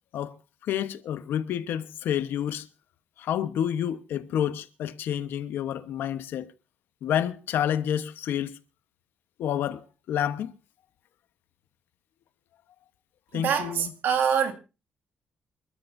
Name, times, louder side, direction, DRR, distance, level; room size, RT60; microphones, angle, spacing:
voice 1, 0.6-2.7 3.2-6.5 7.0-8.6 9.4-9.8 10.1-10.5 13.3-13.9, left 10 dB, 75° left, 1.0 m, -29 dB
voice 2, 13.3-14.5, right 7 dB, 65° right, 2.2 m, -25 dB
28.5 x 12.5 x 2.6 m
cardioid pair, 170°, 4 cm